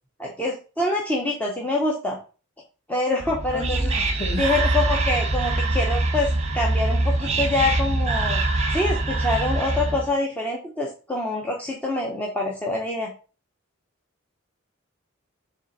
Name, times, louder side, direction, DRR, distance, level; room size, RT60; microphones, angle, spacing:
voice 1, 0.2-2.2 2.9-3.9 4.4-8.4 8.7-13.1, left 2 dB, 10° left, 0.9 m, -25 dB
Whispering, 3.2-10.1, right 2 dB, 30° right, 1.0 m, -24 dB
voice 2, 3.5-4.7, left 2 dB, 25° left, 1.2 m, -32 dB
7.1 x 3.3 x 4.1 m
head